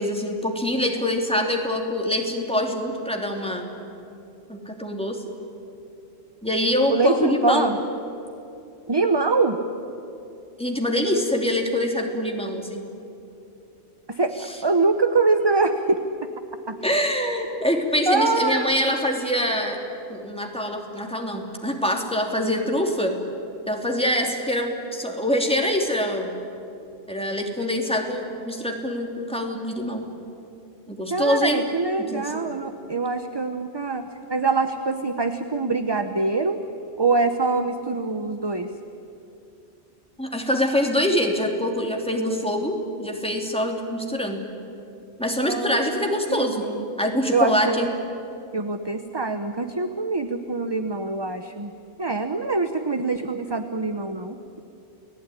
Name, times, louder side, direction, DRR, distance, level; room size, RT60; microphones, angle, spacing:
voice 1, 0.0-3.7 4.5-5.2 6.4-7.7 10.6-12.8 16.8-19.8 20.1-23.2 23.7-26.3 27.1-30.1 30.9-31.6 32.1-32.3 40.2-44.4 45.2-46.7 47.0-48.0, left 1 dB, 5° left, 1 dB, 3.0 m, -24 dB
voice 2, 6.9-7.8 8.9-9.6 14.1-14.3 14.6-16.3 16.7-16.8 18.1-18.7 31.1-36.6 37.0-38.7 45.5-46.8 47.3-47.9 48.5-51.7 52.0-54.4, right 3 dB, 25° right, 8 dB, 0.9 m, -24 dB
29.5 x 19.0 x 10.0 m, 2.7 s
omnidirectional pair, 1.2 m